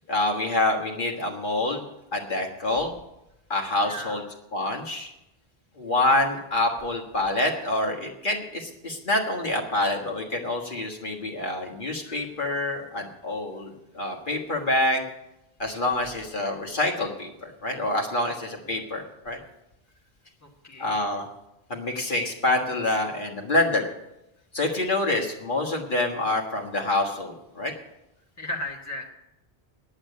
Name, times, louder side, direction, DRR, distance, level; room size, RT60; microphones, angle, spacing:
voice 1, 0.1-1.8 2.1-2.9 3.5-4.2 4.5-5.1 5.8-15.0 15.6-19.4 20.8-21.3 21.7-23.9 24.5-27.7, left 2 dB, 50° left, 0 dB, 1.7 m, -26 dB
voice 2, 3.8-4.2 12.0-12.2 18.6-18.9 20.6-21.1 28.4-29.1, left 1 dB, 15° left, 0 dB, 1.5 m, -36 dB
10.0 x 8.2 x 8.4 m, 0.89 s
omnidirectional pair, 1.1 m